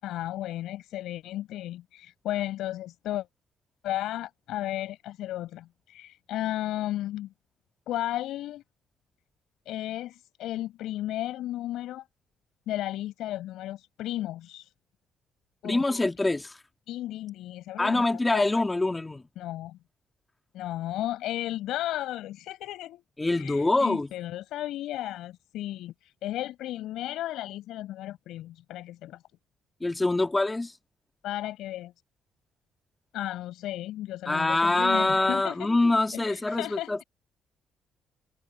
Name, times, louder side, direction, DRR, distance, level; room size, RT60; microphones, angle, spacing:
voice 1, 0.0-3.3 3.8-7.3 7.9-8.6 9.7-12.0 12.7-14.7 15.6-15.8 16.9-18.0 18.3-18.5 19.4-19.8 20.5-23.0 23.3-29.2 31.2-31.9 33.1-35.7 36.1-36.9, left 14 dB, 85° left, 7.0 m, -34 dB
voice 2, 15.6-16.6 17.8-19.2 23.2-24.1 29.8-30.7 34.3-37.0, left 2 dB, 20° left, 2.3 m, -25 dB
cardioid pair, 90°, 0 cm